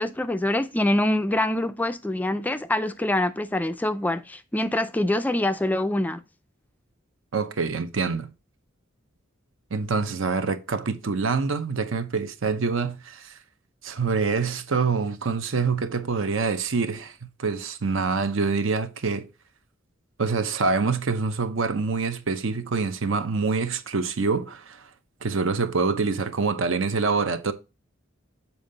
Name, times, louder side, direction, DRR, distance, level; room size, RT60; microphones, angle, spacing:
voice 1, 0.0-6.2, left 1 dB, 10° left, 0.3 m, -25 dB
voice 2, 7.3-8.3 9.7-13.3 13.8-19.3 20.2-24.9 25.2-27.5, right 4 dB, 70° right, 0.7 m, -26 dB
7.1 x 4.5 x 3.8 m
head